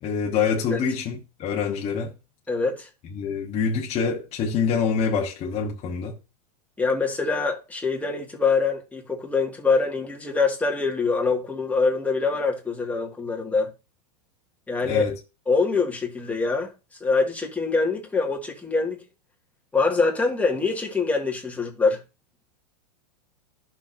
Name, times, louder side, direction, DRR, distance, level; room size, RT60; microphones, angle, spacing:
voice 1, 0.0-2.1 3.1-6.2 14.8-15.2, left 6 dB, 30° left, 1.2 m, -26 dB
voice 2, 2.5-2.9 6.8-13.7 14.7-15.0 15.5-16.7 17.0-19.0 19.7-22.0, left 4 dB, 5° left, 2.0 m, -24 dB
11.5 x 6.0 x 2.7 m
supercardioid pair, 130°, 20 cm